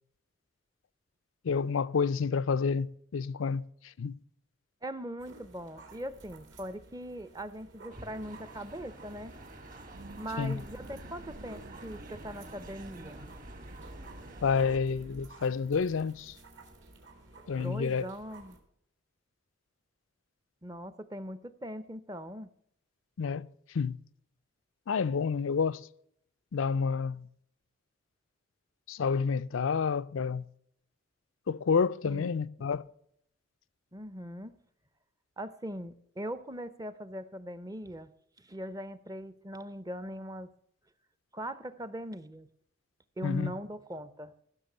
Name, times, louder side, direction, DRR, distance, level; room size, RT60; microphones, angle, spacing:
voice 1, 1.4-3.6 4.0-4.1 10.4-10.6 14.4-16.3 17.5-18.0 23.2-23.5 23.7-24.0 24.9-25.8 26.5-27.3 28.9-30.5 31.5-32.8 43.2-43.5, left 5 dB, 80° left, 0.4 m, -29 dB
voice 2, 4.8-9.3 10.2-13.2 17.5-18.6 20.6-22.5 32.0-32.3 33.9-34.5 35.4-38.1 38.4-40.5 41.3-42.5 43.2-44.4, equal, 20° right, 0.6 m, -40 dB
sound 1, 5.2-18.6, right 3 dB, 65° right, 2.6 m, -54 dB
sound 2, 7.9-14.8, right 1 dB, 40° right, 1.6 m, -49 dB
sound 3, 9.9-15.3, right 1 dB, 80° right, 1.2 m, -50 dB
15.5 x 6.6 x 6.6 m
head